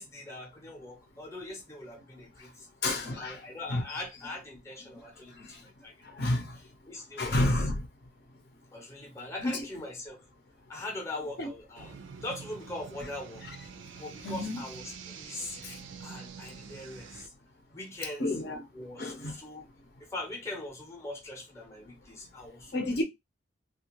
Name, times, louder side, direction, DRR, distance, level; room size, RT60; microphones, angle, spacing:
voice 1, 0.0-2.7 3.1-5.9 6.9-7.4 8.7-10.2 10.7-13.4 14.0-17.3 17.7-18.3 18.7-19.7 20.0-23.0, left 2 dB, 15° left, 0.7 m, -41 dB
voice 2, 2.8-3.8 5.3-5.6 6.0-6.6 7.2-7.9 9.4-9.6 10.7-10.8 11.4-11.5 13.4-13.6 14.2-14.7 15.6-15.8 18.2-18.6 19.0-19.4 22.7-23.0, left 1 dB, 55° left, 0.6 m, -31 dB
sound 1, 11.8-17.3, right 6 dB, 70° right, 0.4 m, -46 dB
2.5 x 2.3 x 2.9 m
head